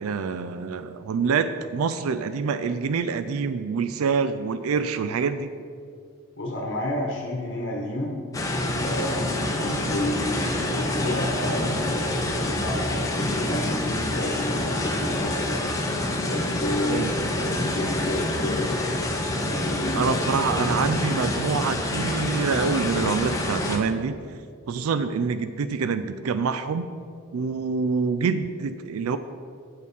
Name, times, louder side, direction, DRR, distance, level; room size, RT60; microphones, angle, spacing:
voice 1, 0.0-5.5 9.6-10.0 16.9-17.3 19.9-24.2 24.7-26.9 27.3-29.2, right 5 dB, 85° right, 11 dB, 0.4 m, -26 dB
voice 2, 6.4-8.1 8.8-15.7 16.2-18.9 19.4-20.2, left 1 dB, 55° left, 0 dB, 1.1 m, -31 dB
sound 1, 8.3-23.8, left 1 dB, 15° left, 0.8 m, -27 dB
8.6 x 6.5 x 5.4 m, 2.3 s
head